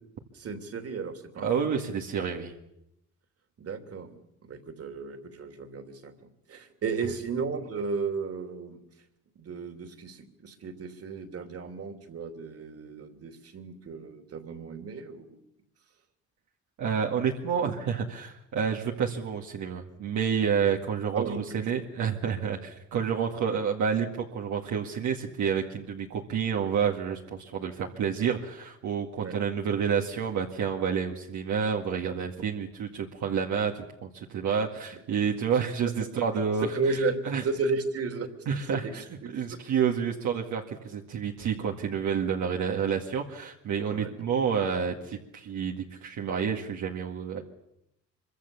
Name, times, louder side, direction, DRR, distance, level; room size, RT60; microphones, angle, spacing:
voice 1, 0.3-1.8 3.6-8.8 9.3-15.4 21.1-21.6 29.2-29.4 36.1-36.2 36.7-37.2 37.4-38.3 38.7-38.9 39.2-39.6 43.9-44.1, right 4 dB, 50° right, 7 dB, 3.1 m, -34 dB
voice 2, 1.4-2.5 16.8-37.4 38.5-39.0 39.3-47.4, right 7 dB, 75° right, 0 dB, 2.1 m, -29 dB
25.5 x 24.0 x 7.2 m, 0.82 s
cardioid pair, 90°, 30 cm